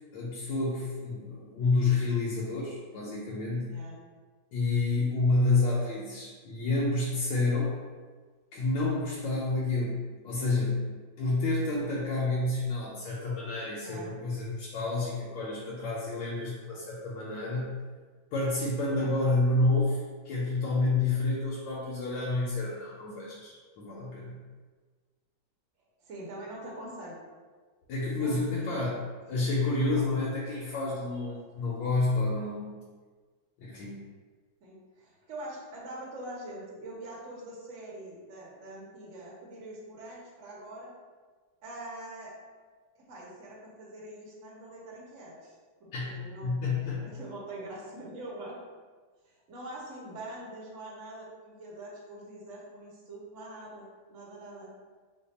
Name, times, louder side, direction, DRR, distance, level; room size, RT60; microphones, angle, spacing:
voice 1, 0.1-3.7 4.5-7.8 8.5-10.0 10.2-10.9 11.2-17.7 18.3-24.4 27.9-29.0 29.3-32.7 33.6-34.0 45.9-47.0, left 2 dB, 90° left, -6 dB, 1.4 m, -29 dB
voice 2, 13.8-14.1 18.9-19.1 26.0-27.1 28.2-28.9 29.2-29.4 29.7-30.1 34.6-40.9 41.6-42.3 42.9-48.6 49.2-54.7, right 1 dB, 55° right, -4 dB, 1.0 m, -44 dB
3.4 x 2.1 x 3.9 m, 1.4 s
omnidirectional pair, 2.0 m